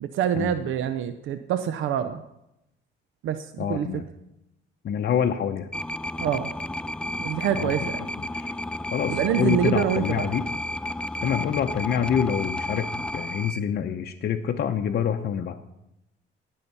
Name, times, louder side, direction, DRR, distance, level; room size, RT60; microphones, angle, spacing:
voice 1, 0.0-2.2 3.2-3.9 6.2-6.5 7.2-8.0 9.1-10.3, right 9 dB, 80° right, 11 dB, 0.6 m, -26 dB
voice 2, 3.6-4.1 4.8-5.7 7.5-8.5 8.9-10.5 11.2-12.9 13.1-15.6, left 8 dB, 55° left, 3 dB, 0.7 m, -26 dB
sound 1, 5.7-13.6, left 1 dB, 5° left, 0.4 m, -32 dB
16.5 x 5.6 x 5.6 m, 0.86 s
cardioid pair, 90°, 20 cm